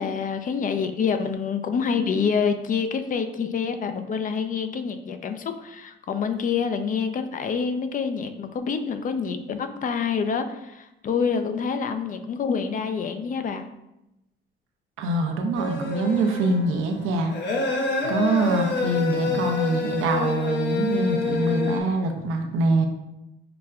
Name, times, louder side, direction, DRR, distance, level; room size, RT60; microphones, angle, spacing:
voice 1, 0.0-13.7, left 6 dB, 40° left, 8 dB, 0.4 m, -27 dB
voice 2, 15.0-17.3 17.6-22.9, right 2 dB, 75° right, 4 dB, 0.6 m, -24 dB
sound 1, 15.5-21.8, left 3 dB, 60° left, 0.8 m, -27 dB
5.8 x 2.2 x 2.4 m, 0.90 s
supercardioid pair, 75°, 21 cm